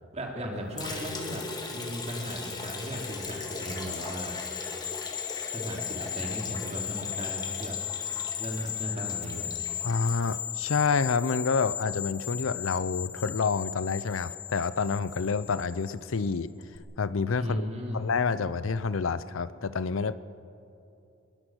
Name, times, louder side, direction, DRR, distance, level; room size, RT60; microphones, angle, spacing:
voice 1, 0.1-1.4 1.7-4.4 5.5-7.8 8.4-9.5 17.4-18.0, equal, 35° right, 1 dB, 3.0 m, -36 dB
Liquid, 0.8-10.9, left 3 dB, 20° left, 2.0 m, -40 dB
sound 1, 2.3-16.3 16.6-16.8, left 10 dB, 50° left, 1.8 m, -37 dB
voice 2, 9.8-16.5 17.0-20.1, left 5 dB, 80° left, 15 dB, 0.6 m, -28 dB
21.5 x 20.0 x 6.3 m, 2.8 s
head